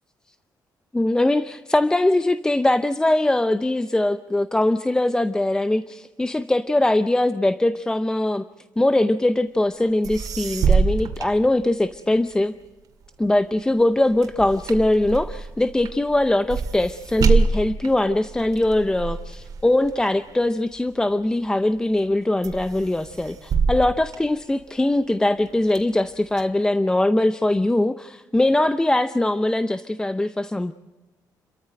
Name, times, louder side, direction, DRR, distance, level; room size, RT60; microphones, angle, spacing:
voice 1, 0.9-8.4 8.8-12.5 13.2-30.7, left 1 dB, 10° left, 12 dB, 0.6 m, -21 dB
sound 1, 9.8-9.9 10.0-12.1 12.6-21.3 21.8-22.1 22.4-24.9 25.4-26.4, right 5 dB, 60° right, 2.5 m, -26 dB
29.5 x 14.0 x 7.7 m, 1.2 s
cardioid pair, 125°, 7 cm